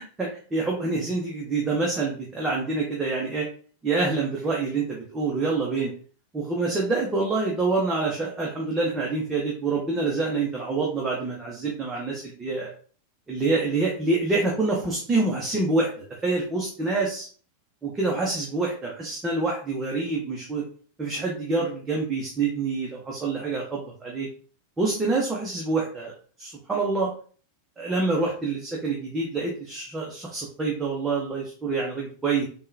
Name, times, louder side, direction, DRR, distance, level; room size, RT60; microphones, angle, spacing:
voice 1, 0.0-3.5 3.8-5.9 6.3-12.7 13.3-15.9 16.2-17.3 17.8-20.6 21.0-24.3 24.8-26.1 26.4-27.1 27.8-32.5, right 3 dB, 15° right, -3 dB, 0.7 m, -26 dB
3.6 x 2.2 x 2.6 m, 0.42 s
figure-of-eight pair, 90°, 0 cm